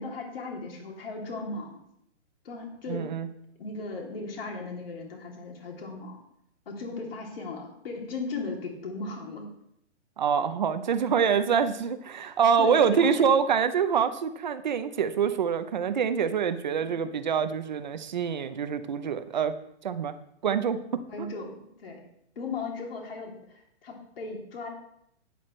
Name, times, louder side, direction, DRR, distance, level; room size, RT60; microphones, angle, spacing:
voice 1, 0.0-1.8 2.4-3.1 3.6-6.2 6.7-9.5 12.6-13.2 16.8-17.0 21.1-22.0 22.3-24.7, left 3 dB, 55° left, 0 dB, 3.0 m, -37 dB
voice 2, 2.9-3.3 10.2-19.5 19.8-20.1 20.4-21.3, right 7 dB, 40° right, 10 dB, 0.7 m, -25 dB
13.5 x 9.4 x 3.2 m, 0.73 s
hypercardioid pair, 180°, 35 cm